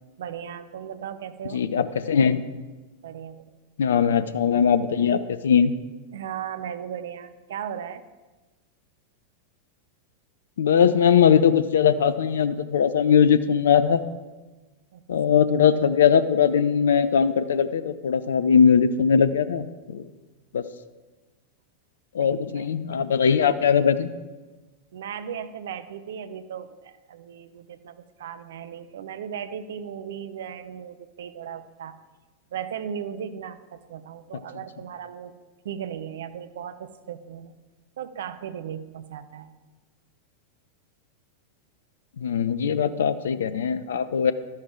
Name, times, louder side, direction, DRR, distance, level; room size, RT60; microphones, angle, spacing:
voice 1, 0.2-1.6 3.0-3.5 6.1-8.0 14.9-15.0 22.2-23.0 24.9-31.9 32.5-35.3 35.6-37.5 38.0-39.5, right 8 dB, 60° right, 11 dB, 0.7 m, -37 dB
voice 2, 1.5-2.4 3.8-5.7 10.6-14.0 15.1-20.1 20.5-20.6 22.1-24.1 42.2-44.3, left 7 dB, 65° left, 14 dB, 0.6 m, -20 dB
12.0 x 10.5 x 4.5 m, 1.2 s
figure-of-eight pair, 90°, 0 cm